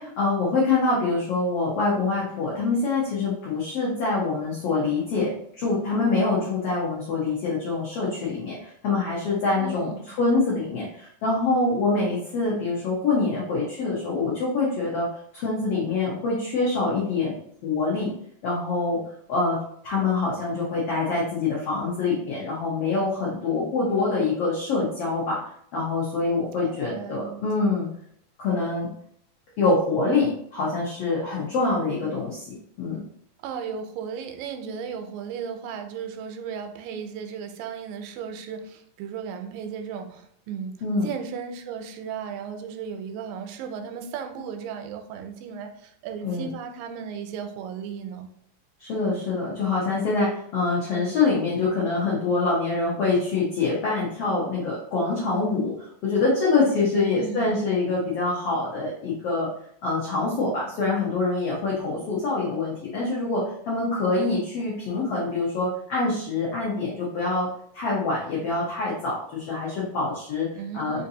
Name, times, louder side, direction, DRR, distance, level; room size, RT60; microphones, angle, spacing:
voice 1, 0.0-5.3 5.6-17.3 17.6-18.1 18.4-19.0 19.3-19.6 19.8-25.4 25.7-27.9 28.4-28.9 29.6-33.0 40.8-41.1 46.2-46.5 48.8-59.5 59.8-67.5 67.7-70.5 70.7-71.0, left 3 dB, 90° left, -5 dB, 1.3 m, -25 dB
voice 2, 9.5-10.2 26.6-27.4 27.7-27.8 33.4-40.8 41.0-48.3 56.9-57.6 70.6-71.1, right 6 dB, 85° right, 6 dB, 2.2 m, -35 dB
5.1 x 2.6 x 2.7 m, 0.68 s
omnidirectional pair, 4.0 m